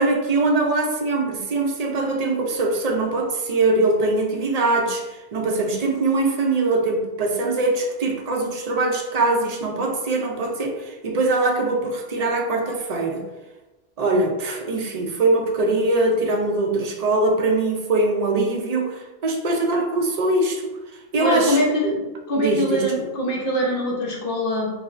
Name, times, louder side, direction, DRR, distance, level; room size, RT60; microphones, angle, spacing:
voice 1, 0.0-13.2 14.0-20.7 21.1-21.6 22.3-22.9, right 2 dB, 50° right, 2 dB, 0.5 m, -22 dB
voice 2, 21.2-22.0 22.3-24.7, equal, 60° left, -2 dB, 0.8 m, -23 dB
4.8 x 2.1 x 2.5 m, 1.1 s
omnidirectional pair, 1.0 m